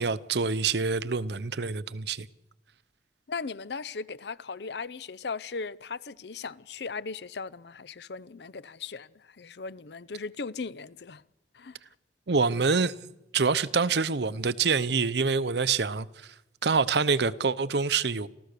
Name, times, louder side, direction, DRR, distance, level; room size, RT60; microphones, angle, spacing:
voice 1, 0.0-2.3 12.3-12.9 13.3-16.1 16.6-18.3, right 4 dB, 70° right, 0.8 m, -26 dB
voice 2, 3.3-11.2 11.5-11.8, left 4 dB, 70° left, 0.6 m, -38 dB
28.0 x 14.0 x 6.8 m
head